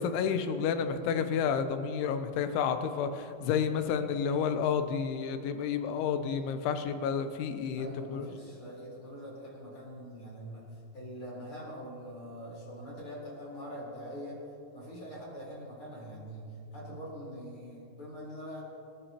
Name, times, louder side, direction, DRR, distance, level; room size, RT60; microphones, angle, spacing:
voice 1, 0.0-8.3, left 7 dB, 85° left, 8 dB, 3.3 m, -30 dB
voice 2, 7.8-14.4 14.7-18.6, equal, 30° left, -6 dB, 4.6 m, -44 dB
25.5 x 12.5 x 3.0 m, 2.6 s
omnidirectional pair, 5.3 m